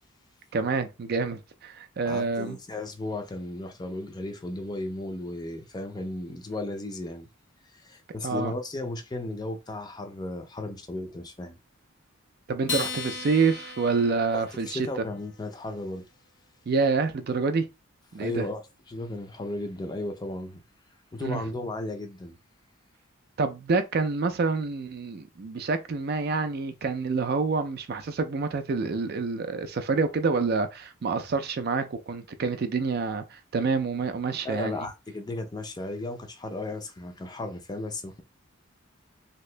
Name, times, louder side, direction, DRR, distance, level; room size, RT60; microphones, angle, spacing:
voice 1, 0.5-2.6 8.2-8.5 12.5-14.9 16.7-17.7 18.1-18.5 21.2-21.4 23.4-34.7, right 4 dB, 50° right, 0.4 m, -27 dB
voice 2, 2.1-7.3 7.6-11.6 14.3-16.0 18.1-18.6 18.9-20.6 21.1-22.4 34.4-38.2, left 2 dB, 20° left, 0.4 m, -35 dB
Acoustic guitar, 12.6-15.3, left 4 dB, 60° left, 0.8 m, -36 dB
2.8 x 2.5 x 3.2 m
head